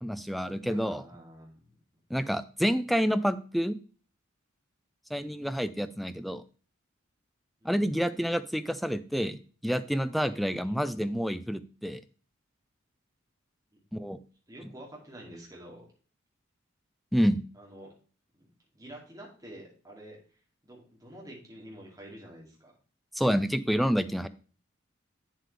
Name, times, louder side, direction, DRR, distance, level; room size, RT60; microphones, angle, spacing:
voice 1, 0.0-1.0 2.1-3.8 5.1-6.4 7.6-12.0 13.9-14.2 17.1-17.4 23.1-24.3, equal, ahead, 12 dB, 0.3 m, -28 dB
voice 2, 0.6-1.8 5.1-5.4 7.6-7.8 10.6-10.7 13.7-13.8 14.5-15.9 17.5-17.9 18.4-18.5 18.7-20.2 20.6-22.7, right 1 dB, 15° right, -2 dB, 2.5 m, -48 dB
8.4 x 7.6 x 3.3 m, 0.39 s
head